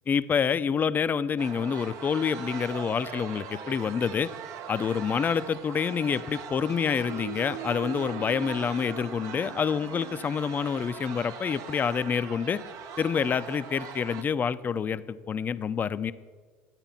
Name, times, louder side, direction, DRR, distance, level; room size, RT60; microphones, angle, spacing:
voice 1, 0.1-4.3 4.7-12.6 13.0-16.1, left 6 dB, 30° left, 14 dB, 0.6 m, -27 dB
sound 1, 1.4-14.2, right 7 dB, 55° right, 0.9 m, -40 dB
12.5 x 8.8 x 5.8 m, 1.4 s
hypercardioid pair, 90°, 6 cm